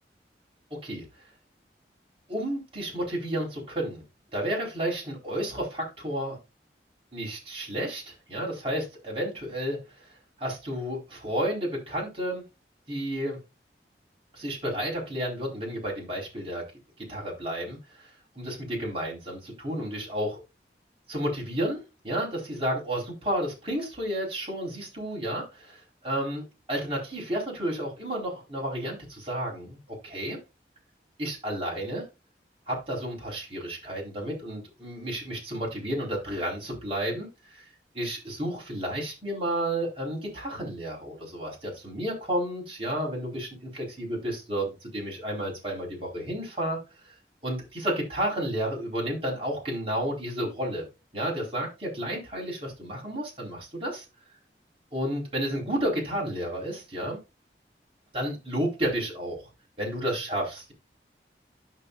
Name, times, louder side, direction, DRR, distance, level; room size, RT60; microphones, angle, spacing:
voice 1, 0.7-1.0 2.3-4.0 4.3-6.4 7.1-12.4 12.9-13.4 14.3-16.6 17.0-20.4 21.1-30.4 31.2-32.0 32.7-37.7 37.9-47.1 47.4-50.8 51.1-54.0 54.9-57.2 58.1-59.5 59.8-60.7, equal, 30° right, -3 dB, 4.5 m, -32 dB
12.0 x 6.1 x 2.5 m, 0.26 s
head